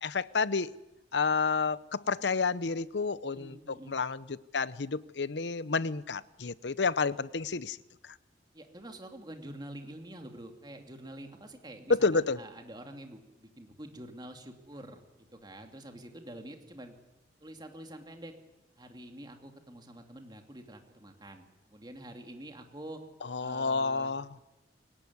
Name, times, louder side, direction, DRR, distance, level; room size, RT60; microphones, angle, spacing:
voice 1, 0.0-0.7 1.1-7.8 8.0-8.1 11.9-12.4 23.3-24.3, left 4 dB, 80° left, 0.8 m, -30 dB
voice 2, 3.3-4.0 8.5-16.9 17.4-18.3 18.8-23.0 23.4-24.1, right 1 dB, 25° right, 2.6 m, -47 dB
23.0 x 19.0 x 9.6 m
head